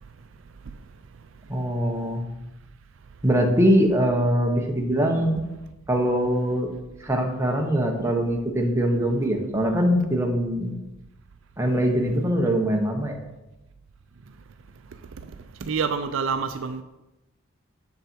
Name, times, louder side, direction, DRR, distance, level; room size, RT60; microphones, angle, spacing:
voice 1, 1.5-2.3 3.2-5.4 5.9-6.7 7.0-10.8 11.6-13.2, equal, 15° right, 1.0 m, -22 dB
voice 2, 15.6-16.8, right 5 dB, 65° right, 0.4 m, -27 dB
7.0 x 6.7 x 4.5 m
head